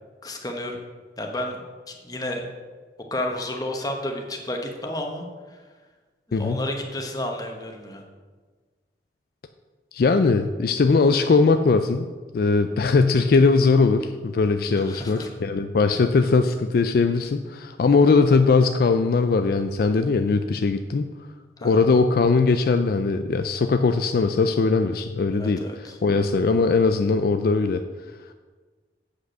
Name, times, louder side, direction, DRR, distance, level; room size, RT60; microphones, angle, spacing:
voice 1, 0.2-0.8 1.2-2.4 3.1-5.6 6.3-8.0 14.9-15.3 21.6-21.8 25.4-26.0, left 1 dB, 20° left, 2 dB, 1.0 m, -31 dB
voice 2, 6.3-6.6 9.9-12.1 12.3-21.1 21.6-25.6 26.0-27.8, left 4 dB, 55° left, 8 dB, 0.4 m, -20 dB
8.2 x 5.1 x 6.6 m, 1.4 s
head